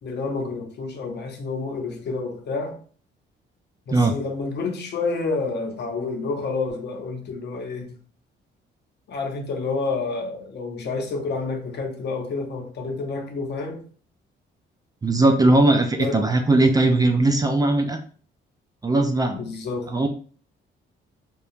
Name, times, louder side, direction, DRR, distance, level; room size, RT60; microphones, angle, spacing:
voice 1, 0.0-2.8 3.9-8.0 9.1-13.8 15.9-16.2 19.3-19.9, left 4 dB, 60° left, 0.7 m, -29 dB
voice 2, 15.0-18.0 18.8-19.4 19.9-20.1, right 2 dB, 20° right, 0.3 m, -19 dB
2.7 x 2.2 x 2.5 m
cardioid pair, 90°, 20 cm